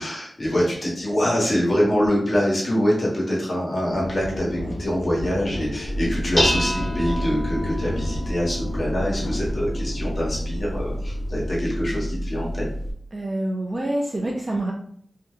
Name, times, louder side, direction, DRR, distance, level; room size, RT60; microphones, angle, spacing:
voice 1, 0.0-12.7, equal, 40° left, -5 dB, 1.3 m, -24 dB
sound 1, 3.9-12.1, left 1 dB, 75° left, 0.6 m, -33 dB
Dishes pots and pans, 5.8-12.9, equal, 20° left, 0.7 m, -28 dB
voice 2, 13.1-14.7, right 1 dB, 35° right, -1 dB, 0.4 m, -26 dB
2.6 x 2.2 x 3.6 m, 0.64 s
wide cardioid pair, 100°, 0 cm